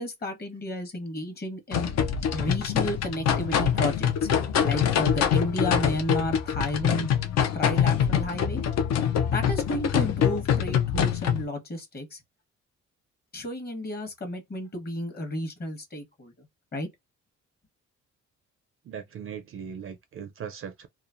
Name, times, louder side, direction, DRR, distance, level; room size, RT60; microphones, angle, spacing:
voice 1, 0.0-1.9 2.3-4.3 4.6-7.1 7.5-8.6 9.3-12.2 13.3-16.3 16.7-16.9, left 1 dB, 30° left, 1.1 m, -32 dB
sound 1, 1.7-11.4, left 8 dB, 60° left, 0.5 m, -25 dB
voice 2, 18.9-20.9, right 7 dB, 45° right, 0.4 m, -39 dB
3.0 x 2.1 x 2.5 m
cardioid pair, 90°, 30 cm